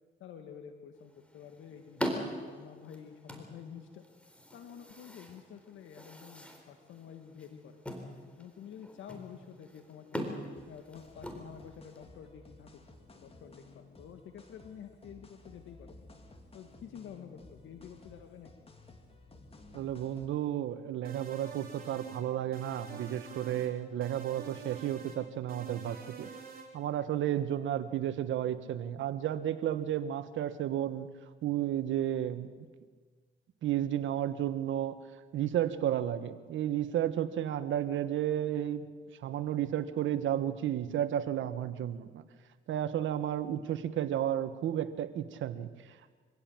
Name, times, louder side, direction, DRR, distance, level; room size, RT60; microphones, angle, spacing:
voice 1, 0.2-4.0 4.5-7.8 8.4-10.3 10.7-12.7 13.2-16.0 16.5-18.5, left 8 dB, 75° left, 6 dB, 1.8 m, -49 dB
sound 1, 1.0-12.0, equal, 5° left, 4.0 m, -42 dB
sound 2, 10.5-20.3, left 2 dB, 30° left, 3.1 m, -55 dB
voice 2, 19.7-26.3 26.7-31.1 31.4-32.5 33.6-34.9 35.3-38.9 39.2-42.2 42.7-45.7, right 11 dB, 75° right, 12 dB, 1.4 m, -32 dB
sound 3, 21.0-22.2 22.5-23.7 24.0-25.2 25.5-26.7, right 7 dB, 50° right, 4.3 m, -46 dB
25.0 x 16.5 x 9.0 m, 1.5 s
cardioid pair, 90°, 20 cm